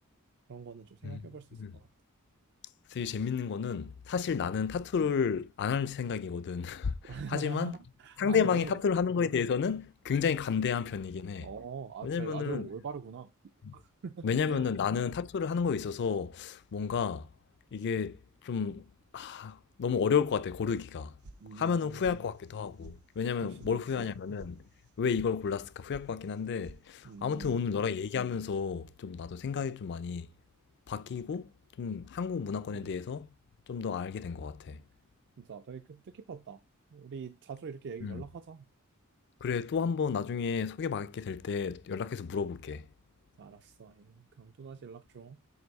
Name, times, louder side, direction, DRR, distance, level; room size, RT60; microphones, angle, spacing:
voice 1, 0.5-1.9 7.1-8.8 11.4-13.3 13.7-14.7 21.4-22.2 23.4-24.1 27.0-27.6 32.7-32.9 35.4-36.6 36.9-38.7 43.4-45.4, right 6 dB, 50° right, 0.4 m, -43 dB
voice 2, 2.9-7.7 8.2-11.5 12.0-12.7 13.6-13.8 14.2-17.3 17.7-18.8 19.1-21.1 21.6-24.6 25.0-30.3 30.9-31.5 31.8-33.3 33.7-34.8 38.0-38.2 39.4-42.9, left 6 dB, 50° left, 0.4 m, -32 dB
sound 1, 21.2-21.8 22.0-22.6 22.8-22.9 23.3-23.7 24.0-24.5 24.8-25.3 25.6-26.1 26.3-26.8 27.1-27.6, right 2 dB, 90° right, 0.7 m, -51 dB
7.9 x 2.7 x 5.2 m
head